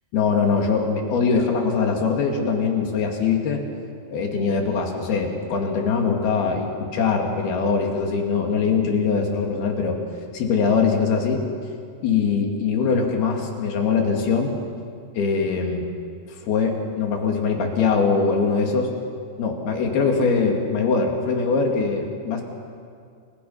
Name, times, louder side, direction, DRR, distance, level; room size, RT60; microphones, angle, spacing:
voice 1, 0.1-3.6 4.1-10.0 10.3-11.4 12.0-14.5 15.1-15.9 16.4-18.9 19.4-22.4, left 5 dB, 75° left, 2 dB, 4.3 m, -22 dB
29.5 x 23.0 x 5.7 m, 2.3 s
omnidirectional pair, 4.6 m